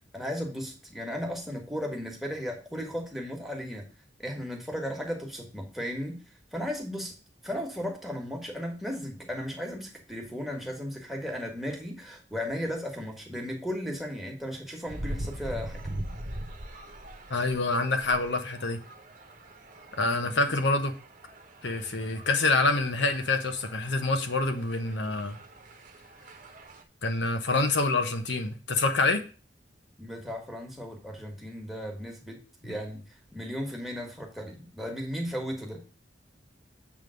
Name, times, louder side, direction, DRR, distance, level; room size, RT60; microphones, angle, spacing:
voice 1, 0.1-3.8 4.2-6.2 6.5-7.1 7.4-15.8 20.2-20.6 30.0-33.0 33.3-35.8, equal, ahead, 1.6 m, -35 dB
sound 1, 14.9-26.8, right 1 dB, 45° right, 1.0 m, -42 dB
voice 2, 17.3-18.8 20.0-20.9 21.6-25.4 27.0-29.2, left 3 dB, 75° left, 1.2 m, -26 dB
7.5 x 3.7 x 6.3 m
head